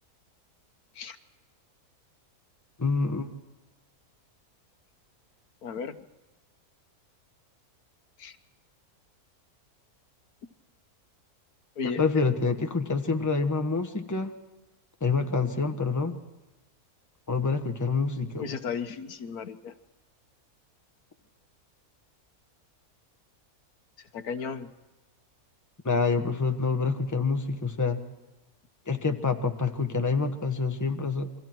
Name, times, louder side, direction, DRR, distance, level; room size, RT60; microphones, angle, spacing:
voice 1, 2.8-3.4 11.8-14.3 15.0-16.2 17.3-18.6 25.8-28.0 28.9-31.4, left 4 dB, 15° left, 5 dB, 1.2 m, -27 dB
voice 2, 5.6-6.0 8.2-8.3 11.8-12.0 18.4-19.7 24.1-24.7, left 5 dB, 75° left, 9 dB, 1.5 m, -34 dB
29.0 x 24.0 x 4.6 m, 1.1 s
omnidirectional pair, 1.6 m